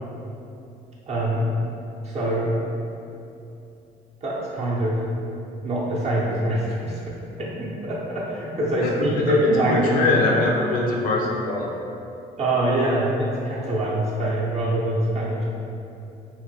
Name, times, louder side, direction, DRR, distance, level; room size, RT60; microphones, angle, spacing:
voice 1, 1.1-1.4 2.0-2.5 4.2-5.0 5.6-6.9 7.4-10.4 12.4-15.4, right 1 dB, 40° right, -5 dB, 0.6 m, -24 dB
voice 2, 8.8-11.8, left 2 dB, 55° left, -2 dB, 0.5 m, -23 dB
3.0 x 2.1 x 3.1 m, 2.7 s
cardioid pair, 110°, 17 cm